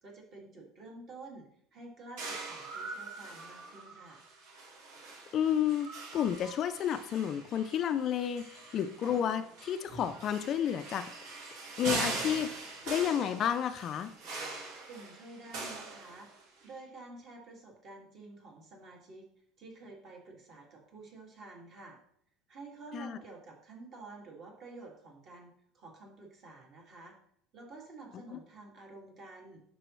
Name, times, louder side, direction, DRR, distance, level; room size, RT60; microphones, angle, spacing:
voice 1, 0.0-4.2 14.9-19.3 19.6-22.0 22.5-27.2 27.5-29.6, right 3 dB, 35° right, 0 dB, 2.1 m, -50 dB
sound 1, 2.2-16.6, right 3 dB, 65° right, 1.9 m, -42 dB
voice 2, 5.3-11.1 11.8-12.6 12.9-14.1 22.9-23.2 28.3-28.4, left 9 dB, 35° left, 10 dB, 0.4 m, -31 dB
9.9 x 6.0 x 3.1 m, 0.67 s
cardioid pair, 160°, 0 cm